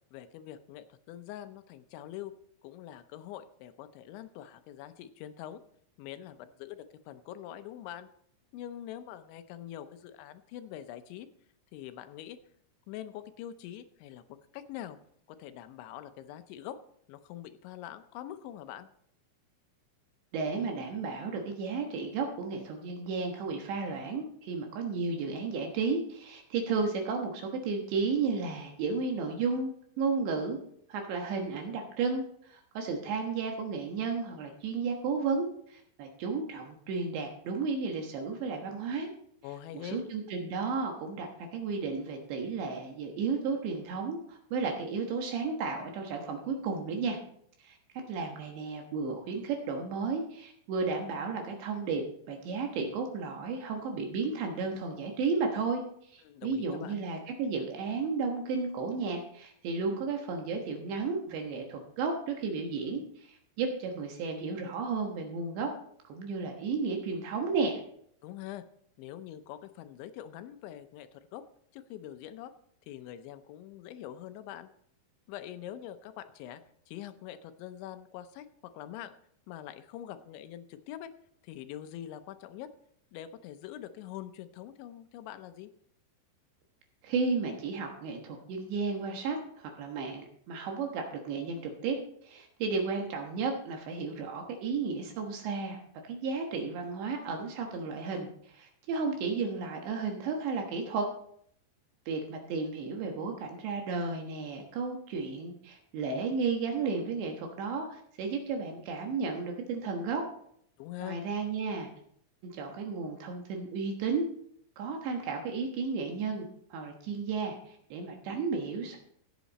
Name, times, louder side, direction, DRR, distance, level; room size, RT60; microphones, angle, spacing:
voice 1, 0.1-2.3 2.6-5.6 6.0-8.1 8.5-11.3 11.7-12.4 12.9-15.0 15.4-16.8 17.1-18.9 39.4-40.0 56.2-57.0 68.2-68.6 69.0-71.4 71.7-72.5 72.9-74.7 75.3-76.6 76.9-79.1 79.5-81.1 81.4-82.7 83.1-85.7 110.8-111.2, left 11 dB, 80° left, 10 dB, 3.0 m, -44 dB
voice 2, 20.3-29.7 30.0-30.6 30.9-39.1 39.9-47.2 47.6-47.8 48.1-65.7 66.1-67.8 87.0-92.0 92.2-95.8 96.1-101.1 102.1-110.2 111.0-111.9 112.4-114.3 114.8-119.0, right 4 dB, 70° right, 2 dB, 3.4 m, -33 dB
15.0 x 8.3 x 4.1 m, 0.66 s
omnidirectional pair, 5.5 m